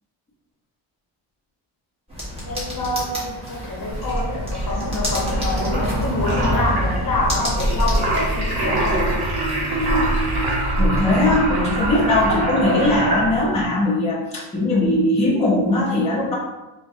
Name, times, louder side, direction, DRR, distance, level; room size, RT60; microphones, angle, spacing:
sound 1, 2.1-8.1, equal, 10° right, 1.2 m, -27 dB
voice 1, 2.5-9.2, left 2 dB, 40° left, -3 dB, 1.0 m, -26 dB
sound 2, 3.9-13.7, right 1 dB, 50° right, 1.1 m, -24 dB
voice 2, 10.8-16.3, left 1 dB, 15° left, -6 dB, 0.7 m, -20 dB
4.2 x 2.3 x 2.7 m, 1.0 s
cardioid pair, 125°, 49 cm